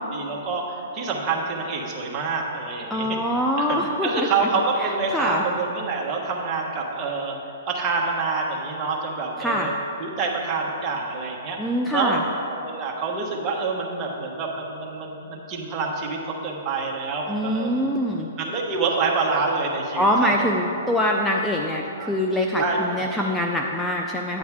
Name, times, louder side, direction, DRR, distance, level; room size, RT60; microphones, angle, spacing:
voice 1, 0.1-3.2 3.6-3.8 4.0-7.3 7.7-9.7 10.0-12.1 12.6-17.9 18.4-20.5 21.9-22.1 22.6-22.8 23.1-23.3, right 4 dB, 25° right, -1 dB, 1.2 m, -27 dB
voice 2, 2.9-4.5 4.8-5.4 9.4-9.7 11.6-12.2 17.3-18.3 20.0-24.4, equal, 5° left, 0 dB, 0.4 m, -24 dB
9.3 x 8.7 x 3.6 m, 2.9 s
hypercardioid pair, 140°, 0 cm